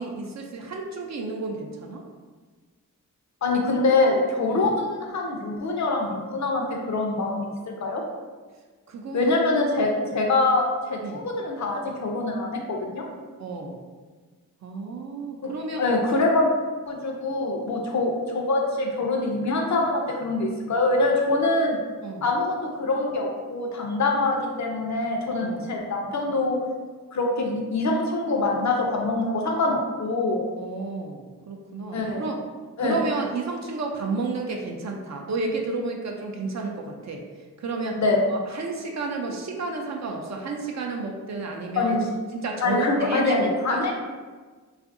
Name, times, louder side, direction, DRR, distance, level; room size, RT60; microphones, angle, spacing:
voice 1, 0.0-2.0 4.5-4.7 8.9-9.4 10.0-10.1 11.0-11.2 13.4-13.8 14.6-15.8 22.0-22.3 25.4-25.7 30.6-32.4 32.8-37.2 37.6-38.0 38.3-42.0 42.3-43.8, right 3 dB, 55° right, 1 dB, 0.4 m, -31 dB
voice 2, 3.4-7.5 7.8-8.0 9.1-13.0 15.4-16.5 16.9-21.8 22.2-26.6 27.1-30.5 31.9-32.3 32.8-33.0 38.0-38.2 41.7-42.1 42.6-43.9, left 2 dB, 55° left, 1 dB, 0.6 m, -24 dB
2.6 x 2.4 x 2.5 m, 1.4 s
wide cardioid pair, 75°, 34 cm